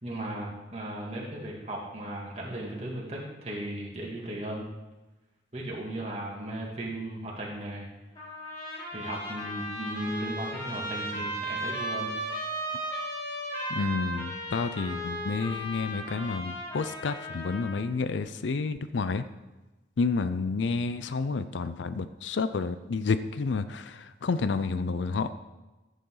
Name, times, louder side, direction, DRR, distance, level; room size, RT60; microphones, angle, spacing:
voice 1, 0.0-4.6 5.5-7.9 8.9-12.1, right 1 dB, 35° right, -3 dB, 2.4 m, -36 dB
Trumpet, 8.2-17.8, right 1 dB, 30° left, 4.2 m, -36 dB
voice 2, 13.7-19.2 20.0-25.3, left 4 dB, 85° left, 12 dB, 0.5 m, -30 dB
14.5 x 8.2 x 3.9 m, 1.1 s
head